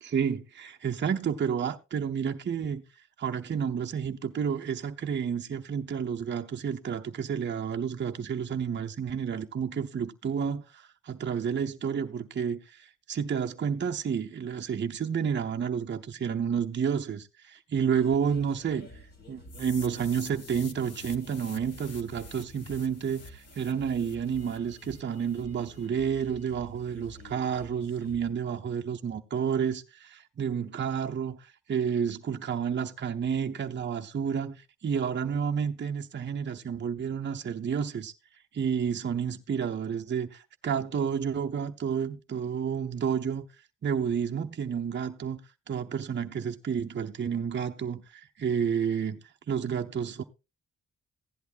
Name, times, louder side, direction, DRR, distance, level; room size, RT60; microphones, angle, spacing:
voice 1, 0.0-2.8 3.2-18.9 19.3-38.1 38.5-43.5 43.8-45.4 45.7-49.2 49.5-50.2, right 7 dB, 35° right, 0.7 m, -30 dB
sound 1, 17.9-28.3, equal, 35° left, 2.4 m, -50 dB
sound 2, 19.5-25.4, left 4 dB, 55° left, 1.5 m, -49 dB
15.5 x 10.5 x 2.5 m
wide cardioid pair, 135°, 31 cm